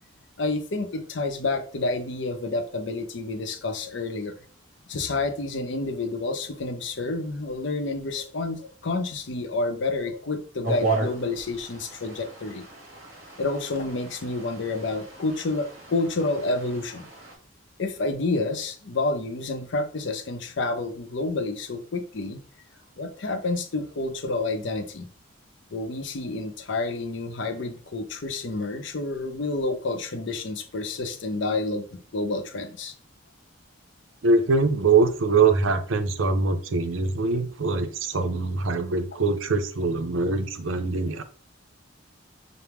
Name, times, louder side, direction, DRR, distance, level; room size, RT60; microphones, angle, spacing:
voice 1, 0.4-4.3 4.9-12.6 13.4-17.1 17.8-22.4 23.0-25.1 25.7-32.9, left 3 dB, 65° left, 0.6 m, -29 dB
sound 1, 10.6-17.4, right 3 dB, 50° right, 1.8 m, -34 dB
voice 2, 34.2-41.2, right 4 dB, 80° right, 0.6 m, -23 dB
5.8 x 2.0 x 3.4 m
head